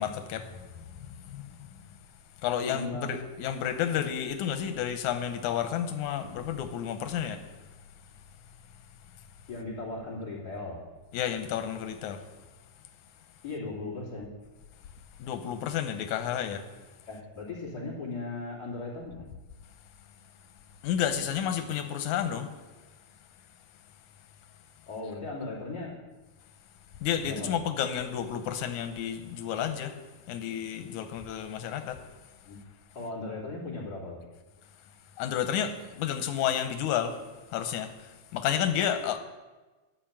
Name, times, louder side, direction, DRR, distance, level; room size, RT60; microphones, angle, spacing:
voice 1, 0.0-2.0 2.4-7.5 11.1-12.2 15.2-16.6 20.8-22.5 27.0-30.0 30.3-32.0 35.2-37.2 37.5-39.2, left 9 dB, 90° left, 8 dB, 2.3 m, -31 dB
voice 2, 2.6-3.2 9.5-10.8 13.4-14.3 17.0-19.3 24.9-25.9 27.2-27.6 32.4-32.6 32.9-34.2, left 3 dB, 30° left, -5 dB, 3.5 m, -37 dB
11.5 x 5.8 x 8.6 m, 1.2 s
omnidirectional pair, 3.4 m